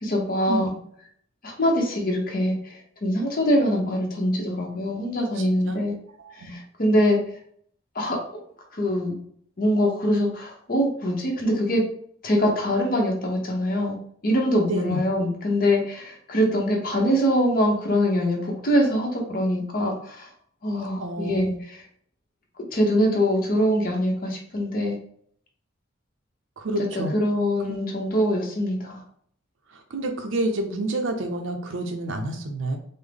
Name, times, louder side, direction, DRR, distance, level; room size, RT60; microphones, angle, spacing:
voice 1, 0.0-0.7 1.4-5.9 6.4-7.2 7.9-8.2 8.7-9.1 9.6-11.8 12.2-14.0 14.2-20.3 20.6-21.5 22.7-25.0 26.9-29.0, equal, 50° left, 0 dB, 0.8 m, -23 dB
voice 2, 5.3-5.8 6.2-6.5 14.6-15.0 21.0-21.6 26.6-27.2 27.7-27.8 29.7-32.8, right 1 dB, 85° right, 4 dB, 0.5 m, -29 dB
3.6 x 2.0 x 3.3 m, 0.62 s
head